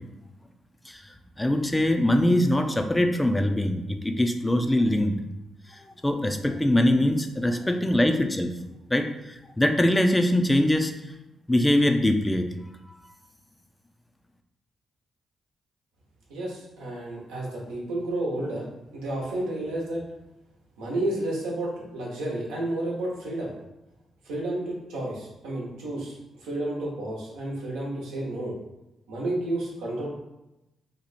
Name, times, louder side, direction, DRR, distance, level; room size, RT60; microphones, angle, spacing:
voice 1, 1.4-5.1 5.7-8.5 8.9-10.9 11.5-12.5 12.9-13.0, left 1 dB, 15° left, 6 dB, 0.4 m, -23 dB
voice 2, 16.3-20.0 20.8-23.5 24.2-28.6 29.1-30.1, right 1 dB, 90° right, -3 dB, 0.9 m, -31 dB
2.8 x 2.3 x 4.2 m, 0.93 s
supercardioid pair, 55°, 0 cm